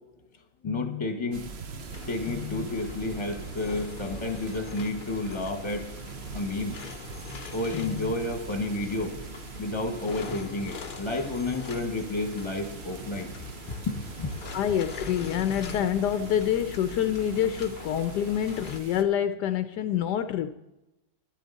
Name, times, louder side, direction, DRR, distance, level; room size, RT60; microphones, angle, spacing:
voice 1, 0.6-1.4 2.1-5.8 6.3-6.9 7.5-9.2 9.6-13.3 13.8-14.3, left 2 dB, 20° left, 1.3 m, -31 dB
sound 1, 1.3-19.0, right 4 dB, 50° right, 0.9 m, -42 dB
sound 2, 1.9-18.8, left 4 dB, 45° left, 0.6 m, -43 dB
voice 2, 14.5-20.5, left 10 dB, 75° left, 1.2 m, -26 dB
12.5 x 11.0 x 4.0 m
omnidirectional pair, 1.9 m